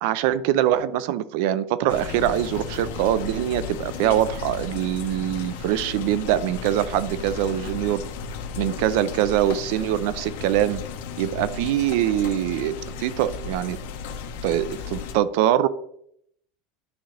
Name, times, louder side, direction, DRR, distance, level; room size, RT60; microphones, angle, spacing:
voice 1, 0.0-8.1 8.6-10.8 11.2-13.8 14.4-15.7, right 12 dB, 55° right, 16 dB, 0.4 m, -23 dB
sound 1, 1.9-15.1, left 5 dB, 80° left, 0.9 m, -34 dB
10.5 x 3.8 x 3.3 m, 0.71 s
supercardioid pair, 175°, 0 cm